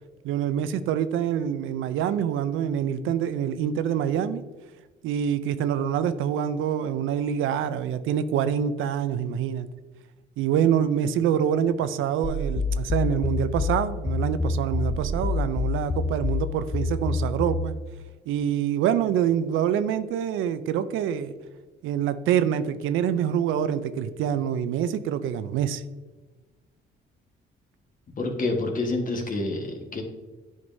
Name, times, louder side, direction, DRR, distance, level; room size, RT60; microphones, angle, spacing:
voice 1, 0.2-4.4 5.0-9.7 10.4-17.7 18.3-21.3 21.8-25.8, right 9 dB, 85° right, 12 dB, 0.5 m, -26 dB
sound 1, 12.2-17.7, left 4 dB, 20° left, 0.5 m, -27 dB
voice 2, 28.1-30.0, left 2 dB, 45° left, 2 dB, 1.4 m, -28 dB
9.7 x 5.2 x 2.7 m, 1.2 s
cardioid pair, 90°, 20 cm